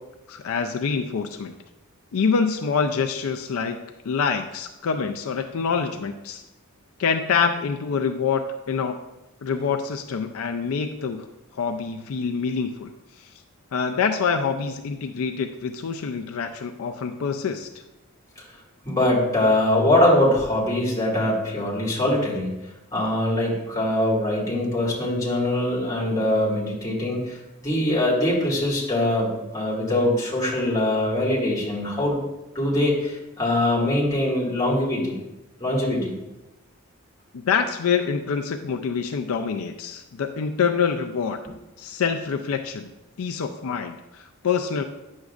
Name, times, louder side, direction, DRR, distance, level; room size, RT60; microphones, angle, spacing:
voice 1, 0.3-1.6 2.1-3.8 4.0-6.4 7.0-9.0 9.4-11.3 11.5-12.9 13.2-13.3 13.7-17.7 37.3-41.4 41.8-42.9 43.2-44.8, left 6 dB, 75° left, 5 dB, 0.4 m, -26 dB
voice 2, 18.8-22.5 22.9-32.2 32.5-35.2 35.6-36.1, left 1 dB, 15° left, -5 dB, 2.1 m, -22 dB
9.2 x 6.4 x 2.4 m, 0.99 s
head